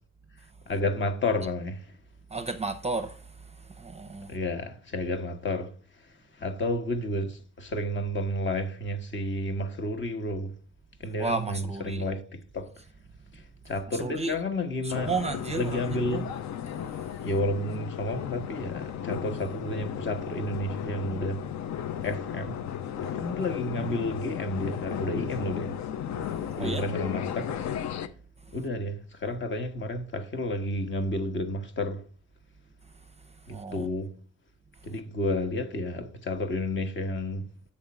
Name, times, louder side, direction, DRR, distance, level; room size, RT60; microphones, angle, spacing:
voice 1, 0.7-2.0 4.3-10.5 11.0-12.7 13.3-15.1 15.5-16.3 17.2-21.4 22.0-22.7 23.0-25.7 26.6-27.6 28.5-32.0 33.5-34.1 34.8-37.5, left 1 dB, 40° left, 1.0 m, -31 dB
voice 2, 2.3-4.4 11.2-12.0 14.0-14.3 14.8-15.8 16.1-16.2 26.6-26.8 33.5-33.9, right 3 dB, 20° right, 0.6 m, -33 dB
sound 1, 14.9-28.1, left 9 dB, 65° left, 0.6 m, -35 dB
8.5 x 3.6 x 5.3 m
cardioid pair, 90°, 30 cm